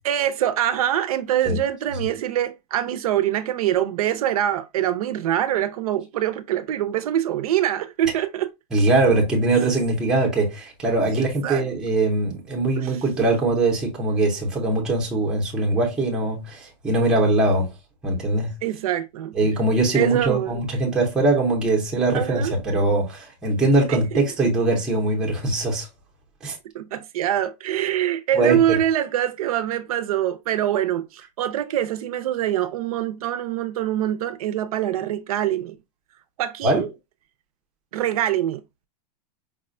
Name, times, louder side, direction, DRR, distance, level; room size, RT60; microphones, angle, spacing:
voice 1, 0.0-8.5 11.4-11.7 12.8-13.0 18.6-19.3 19.9-20.6 22.1-22.6 23.9-24.2 26.7-35.8 36.4-36.9 37.9-38.6, right 11 dB, 60° right, 0.4 m, -24 dB
voice 2, 8.7-17.7 18.0-18.5 19.3-25.9 26.4-26.6 28.3-28.8 36.6-36.9, right 2 dB, 5° right, 0.5 m, -21 dB
4.7 x 2.1 x 2.4 m
supercardioid pair, 175°, 21 cm